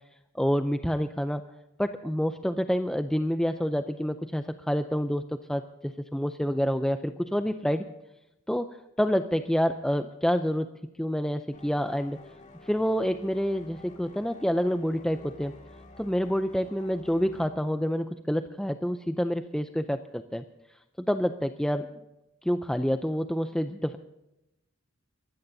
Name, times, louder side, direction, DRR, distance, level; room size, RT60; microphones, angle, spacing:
voice 1, 0.3-1.4 1.8-7.9 8.5-12.2 12.6-15.5 16.0-20.4 21.1-21.9 22.4-24.0, equal, 5° left, 8 dB, 0.4 m, -28 dB
sound 1, 11.5-17.5, left 2 dB, 35° left, 2.1 m, -50 dB
24.5 x 15.5 x 2.7 m, 0.92 s
head